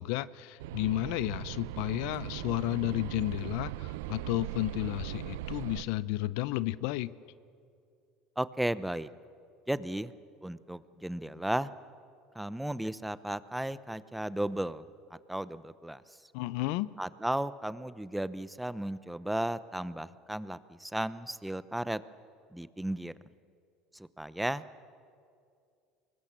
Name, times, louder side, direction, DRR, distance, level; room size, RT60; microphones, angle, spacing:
voice 1, 0.0-7.1 16.3-16.9, left 16 dB, 75° left, 18 dB, 0.6 m, -32 dB
sound 1, 0.6-5.8, right 14 dB, 85° right, 0.7 m, -39 dB
voice 2, 8.4-9.1 9.7-10.1 10.4-11.7 12.3-14.8 15.3-16.0 17.0-22.0 22.5-23.1 24.2-24.6, right 1 dB, 5° right, 16 dB, 0.8 m, -34 dB
24.5 x 20.5 x 7.4 m, 2.3 s
supercardioid pair, 95°, 0 cm